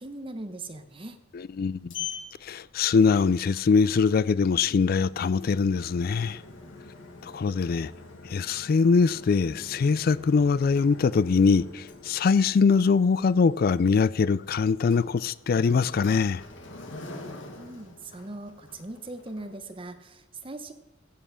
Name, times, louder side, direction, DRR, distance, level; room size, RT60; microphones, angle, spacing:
voice 1, 0.0-1.2 17.6-20.7, right 2 dB, 25° right, 0.9 m, -40 dB
Sliding door, 1.3-19.6, left 4 dB, 75° left, 1.6 m, -45 dB
voice 2, 1.3-1.9 2.4-6.4 7.2-7.9 8.2-16.4, left 5 dB, 50° left, 0.3 m, -23 dB
15.5 x 5.6 x 6.3 m
head